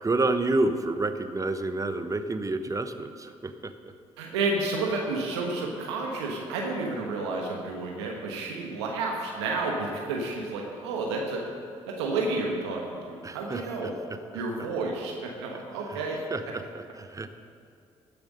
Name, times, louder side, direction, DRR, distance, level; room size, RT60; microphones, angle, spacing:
voice 1, 0.0-3.9 13.2-13.9 14.3-14.4 15.5-15.6 15.9-16.0 16.3-17.4, right 2 dB, 25° right, 9 dB, 0.9 m, -29 dB
voice 2, 4.2-11.4 11.9-14.0 14.3-16.2, right 3 dB, 90° right, 0 dB, 1.2 m, -31 dB
15.0 x 6.9 x 5.3 m, 2.3 s
hypercardioid pair, 55°, 14 cm